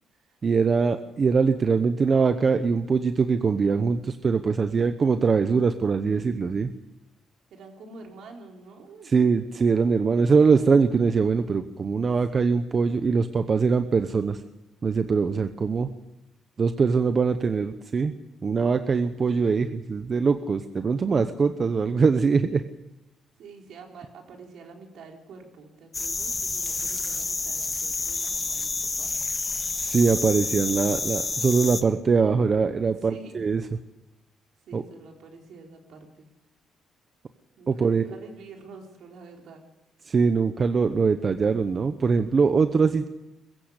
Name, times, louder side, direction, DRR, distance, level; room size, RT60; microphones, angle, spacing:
voice 1, 0.4-6.7 9.0-14.4 14.8-15.9 16.6-18.1 18.4-22.6 29.8-33.6 34.7-34.8 37.7-38.0 40.1-43.1, right 5 dB, 35° right, 9 dB, 0.9 m, -22 dB
voice 2, 7.5-9.1 12.3-12.5 23.4-29.1 33.0-33.4 34.6-36.3 37.6-39.6, right 4 dB, 70° right, 1 dB, 4.4 m, -47 dB
sound 1, 25.9-31.8, left 3 dB, 25° left, 1.6 m, -29 dB
22.0 x 15.5 x 8.2 m, 0.97 s
cardioid pair, 120°, 0 cm